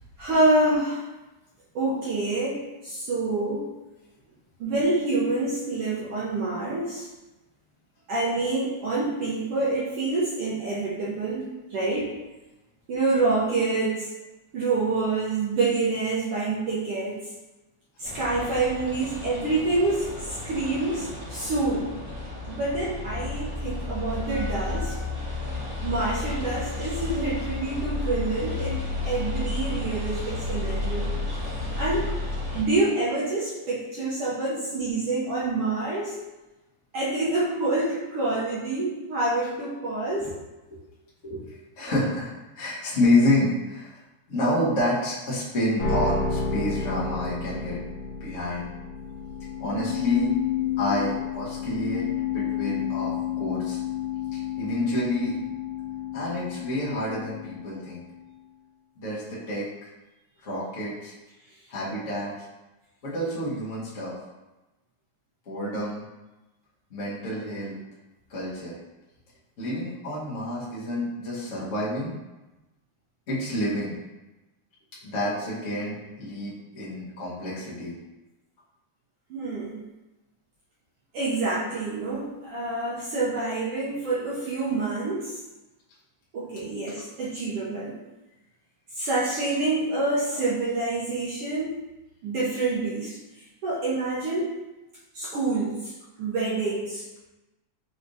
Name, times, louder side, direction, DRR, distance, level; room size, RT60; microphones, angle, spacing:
voice 1, 0.2-1.0 1.7-3.6 4.6-7.1 8.1-12.1 12.9-14.1 14.5-17.2 18.0-21.9 22.5-25.1 25.8-31.1 31.8-32.1 32.5-36.2 36.9-40.2 79.3-79.8 81.1-85.4 86.3-88.0 88.9-91.7 92.2-93.2 93.6-94.5 95.1-95.9 96.2-97.0, right 2 dB, 75° right, -7 dB, 1.4 m, -27 dB
sound 1, 18.0-32.6, left 2 dB, 40° right, 0.5 m, -32 dB
voice 2, 41.2-44.0 44.3-47.8 48.2-48.7 49.6-50.3 50.8-53.8 54.3-55.3 56.1-58.0 59.0-59.9 60.4-61.1 61.7-62.3 63.0-64.1 65.4-66.0 66.9-67.8 68.3-68.8 69.6-72.1 73.3-73.9 75.0-78.0, left 1 dB, 50° left, -8 dB, 0.9 m, -28 dB
sound 2, 45.8-58.1, left 7 dB, 75° left, 1.4 m, -30 dB
4.9 x 3.3 x 2.6 m, 1.1 s
omnidirectional pair, 3.3 m